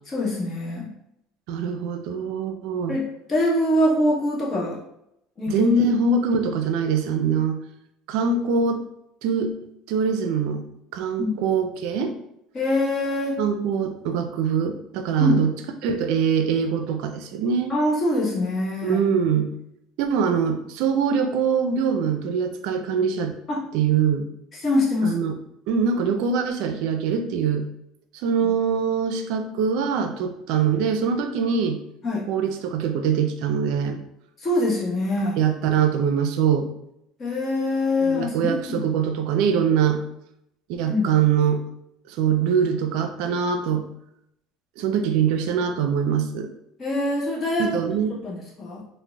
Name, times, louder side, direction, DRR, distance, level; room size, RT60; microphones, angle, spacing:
voice 1, 0.1-0.9 2.9-3.0 3.3-4.8 5.4-5.7 11.2-11.4 12.5-13.4 15.2-15.4 17.7-19.0 23.5-23.6 24.5-25.2 32.0-32.2 34.4-35.4 37.2-38.8 40.9-41.1 46.8-48.0 48.2-48.8, left 1 dB, 35° left, -3 dB, 1.0 m, -24 dB
voice 2, 1.5-3.0 5.5-7.6 8.1-8.8 9.2-10.6 10.9-12.1 13.4-15.5 15.8-17.7 18.8-19.5 20.0-23.3 23.7-24.3 25.0-25.3 25.7-27.7 28.2-31.8 32.3-34.0 35.4-36.7 38.0-40.0 40.7-41.6 42.1-43.9 44.8-46.5 47.6-48.2, right 6 dB, 70° right, 7 dB, 0.4 m, -23 dB
3.7 x 2.1 x 2.3 m, 0.79 s
supercardioid pair, 100°, 0 cm